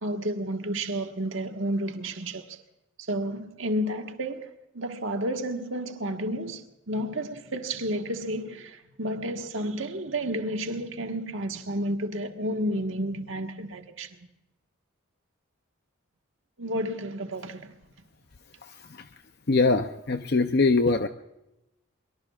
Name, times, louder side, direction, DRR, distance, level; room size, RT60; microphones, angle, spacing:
voice 1, 0.0-2.6 3.0-14.2 16.6-17.7, right 1 dB, 70° right, 1.5 m, -31 dB
voice 2, 18.6-19.1 19.5-21.1, left 3 dB, 50° left, 0.6 m, -23 dB
24.0 x 23.0 x 2.4 m
head